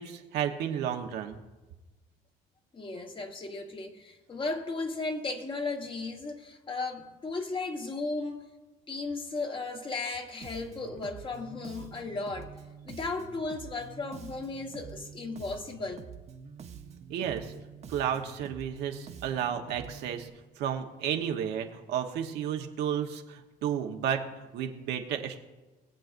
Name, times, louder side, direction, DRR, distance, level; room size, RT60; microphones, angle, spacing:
voice 1, 0.0-1.4 17.1-17.5 17.9-20.3 20.6-25.4, right 9 dB, 85° right, 1.1 m, -32 dB
voice 2, 2.7-8.4 8.9-12.5 12.8-16.0, left 3 dB, 30° left, 1.3 m, -35 dB
Bass guitar, 10.4-20.3, right 7 dB, 40° right, 0.8 m, -47 dB
20.5 x 7.7 x 2.6 m
cardioid pair, 110°, 17 cm